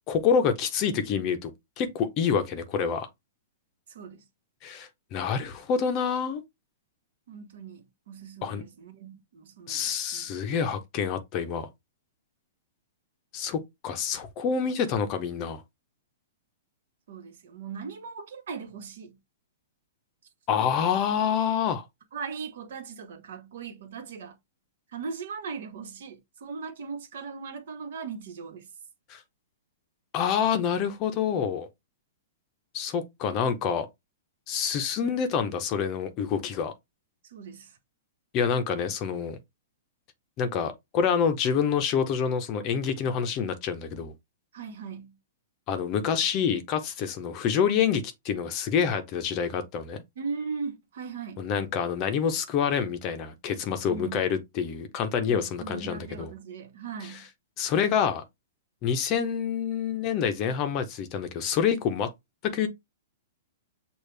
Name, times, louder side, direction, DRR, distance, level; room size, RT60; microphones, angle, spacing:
voice 1, 0.1-1.5 1.8-3.1 4.6-6.4 8.4-8.6 9.7-11.7 13.3-15.6 20.5-21.8 29.1-29.2 30.1-31.7 32.7-33.9 34.5-36.7 38.3-39.4 40.4-44.1 45.7-50.0 51.4-56.3 57.0-57.2 57.6-58.2 58.8-62.1 62.4-62.7, left 7 dB, 30° left, 0.7 m, -27 dB
voice 2, 7.3-9.9 10.1-10.2 17.1-19.2 22.1-24.4 24.9-28.6 37.3-37.7 44.5-45.2 50.2-51.5 53.9-54.2 55.3-57.3, right 5 dB, 65° right, 1.3 m, -39 dB
6.5 x 2.4 x 3.3 m
hypercardioid pair, 155°, 0 cm